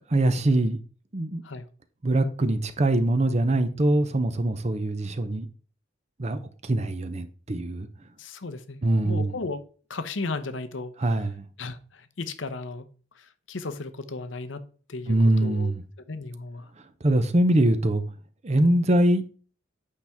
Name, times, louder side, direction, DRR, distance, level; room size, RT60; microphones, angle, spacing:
voice 1, 0.1-0.8 1.1-1.4 2.0-5.5 6.2-7.9 8.8-9.4 11.0-11.4 15.1-15.8 17.0-18.0 18.4-19.2, right 1 dB, 35° right, 0.7 m, -23 dB
voice 2, 8.2-11.2 11.6-12.9 13.2-15.7 16.1-16.7, left 3 dB, 70° left, 0.8 m, -35 dB
8.5 x 5.8 x 3.5 m
head